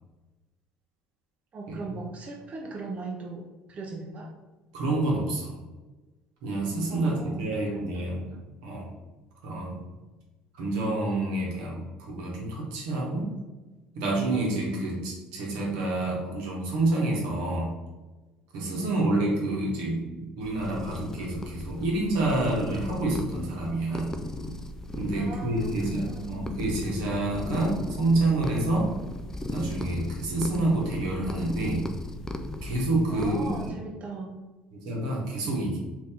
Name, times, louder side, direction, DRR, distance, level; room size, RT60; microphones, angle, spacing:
voice 1, 1.5-4.3 6.9-8.4 18.7-19.2 25.1-26.4 33.1-34.4, right 3 dB, 40° right, 0 dB, 0.5 m, -39 dB
voice 2, 4.7-5.6 6.4-8.3 8.6-8.9 9.4-9.8 10.6-13.3 13.9-17.7 18.5-24.2 24.9-29.0 29.5-31.9 32.6-33.7 34.7-35.8, right 2 dB, 80° right, -2 dB, 1.0 m, -28 dB
sound 1, 20.4-33.7, left 2 dB, 15° left, 0.3 m, -36 dB
2.7 x 2.6 x 3.6 m, 1.2 s
hypercardioid pair, 75°, 4 cm